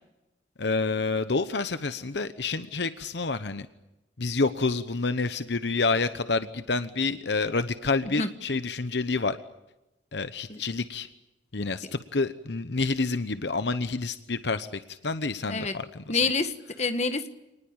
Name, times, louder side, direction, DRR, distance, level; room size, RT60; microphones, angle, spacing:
voice 1, 0.6-3.7 4.2-9.4 10.1-11.1 11.5-16.2, left 3 dB, 70° left, 11 dB, 0.9 m, -28 dB
voice 2, 16.1-17.3, left 4 dB, 40° left, 9 dB, 1.6 m, -27 dB
27.0 x 20.0 x 8.9 m, 0.96 s
head